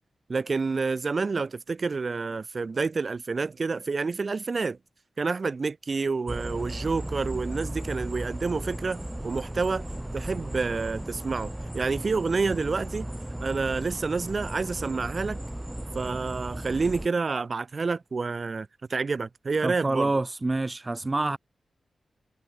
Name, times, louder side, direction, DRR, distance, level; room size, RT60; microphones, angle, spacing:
voice 1, 0.3-4.8 5.2-9.9 10.1-13.1 13.4-15.4 15.9-20.1, right 4 dB, 50° right, 7.1 m, -28 dB
sound 1, 6.3-17.1, right 1 dB, 10° right, 3.1 m, -36 dB
voice 2, 19.6-21.4, right 2 dB, 30° right, 2.7 m, -27 dB
cardioid pair, 55°, 0 cm